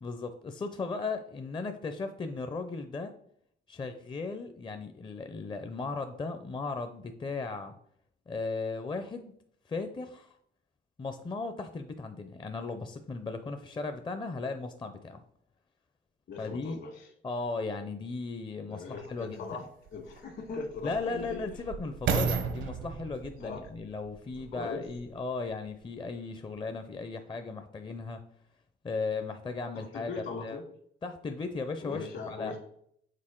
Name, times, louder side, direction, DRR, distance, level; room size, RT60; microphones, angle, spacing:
voice 1, 0.0-3.1 3.7-7.7 8.3-9.3 9.7-10.4 11.0-15.2 16.4-16.8 17.2-19.6 20.8-28.2 28.8-30.6 31.0-32.6, left 3 dB, 25° left, 8 dB, 0.5 m, -36 dB
voice 2, 16.3-17.1 18.7-19.7 19.9-21.4 23.4-23.6 24.5-24.8 29.7-30.6 31.8-32.6, left 4 dB, 65° left, 3 dB, 1.8 m, -40 dB
sound 1, 19.0-19.1 19.9-25.2 25.8-25.9, right 5 dB, 75° right, 0.8 m, -34 dB
6.5 x 4.2 x 3.7 m, 0.69 s
cardioid pair, 90°, 20 cm